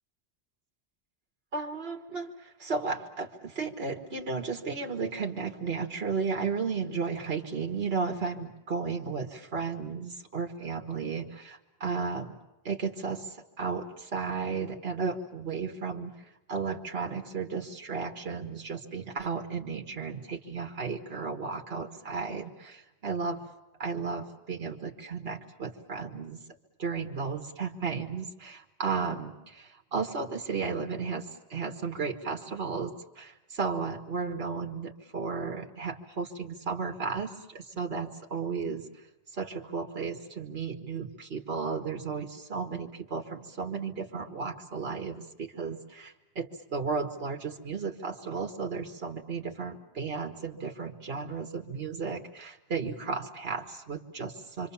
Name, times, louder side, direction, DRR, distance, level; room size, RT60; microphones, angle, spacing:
voice 1, 1.5-12.3 12.6-23.4 23.8-26.4 26.8-38.8 39.3-54.7, right 5 dB, 65° right, 3 dB, 1.9 m, -34 dB
26.0 x 25.5 x 7.1 m, 0.95 s
omnidirectional pair, 1.1 m